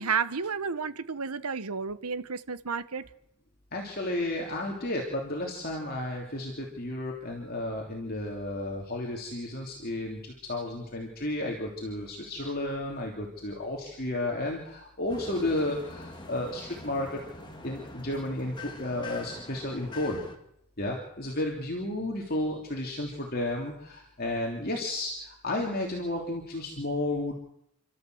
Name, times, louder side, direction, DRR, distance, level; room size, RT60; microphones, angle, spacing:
voice 1, 0.0-3.0, right 5 dB, 90° right, 1.1 m, -31 dB
voice 2, 3.7-17.2 17.6-20.2 20.8-27.3, left 1 dB, 45° left, 3.1 m, -32 dB
sound 1, 15.1-20.4, left 2 dB, 20° left, 2.2 m, -44 dB
29.0 x 13.0 x 7.9 m
head